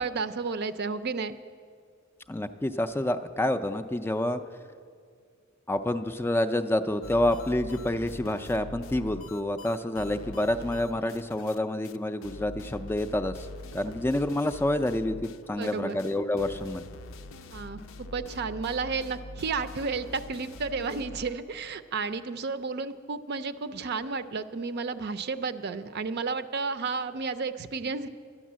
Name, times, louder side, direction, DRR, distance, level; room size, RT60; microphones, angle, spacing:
voice 1, 0.0-1.4 15.6-16.0 17.5-28.1, right 4 dB, 55° right, 11 dB, 0.5 m, -32 dB
voice 2, 2.3-4.4 5.7-13.5 13.7-16.8, left 1 dB, 10° left, 8 dB, 0.4 m, -28 dB
sound 1, 7.0-11.6 11.8-12.0 12.2-21.5, left 2 dB, 75° left, 0.5 m, -44 dB
11.5 x 10.0 x 7.4 m, 2.2 s
head